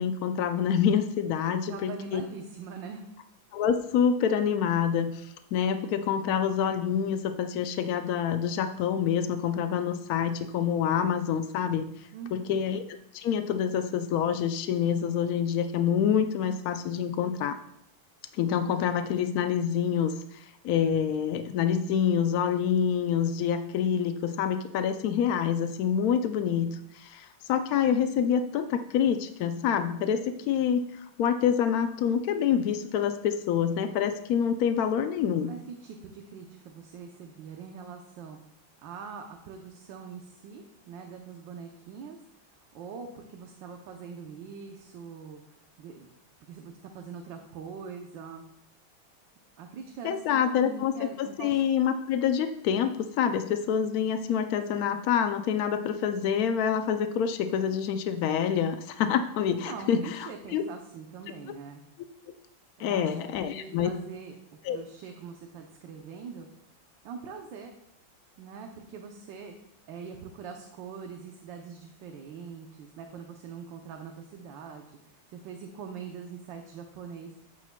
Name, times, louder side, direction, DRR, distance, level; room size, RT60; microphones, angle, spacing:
voice 1, 0.0-2.2 3.5-12.8 13.1-17.6 18.4-26.7 26.9-35.5 50.0-60.6 62.8-63.9 64.6-64.8, left 8 dB, 80° left, 8 dB, 0.8 m, -27 dB
voice 2, 1.7-3.1 12.1-12.6 35.5-38.4 38.8-42.2 42.7-45.4 45.8-46.1 46.5-48.4 49.6-51.6 59.5-61.8 62.8-63.1 63.4-64.3 64.7-66.5 67.0-67.8 68.4-69.5 69.9-77.3, right 6 dB, 70° right, 4 dB, 1.5 m, -43 dB
13.0 x 8.4 x 2.2 m, 0.76 s
omnidirectional pair, 2.2 m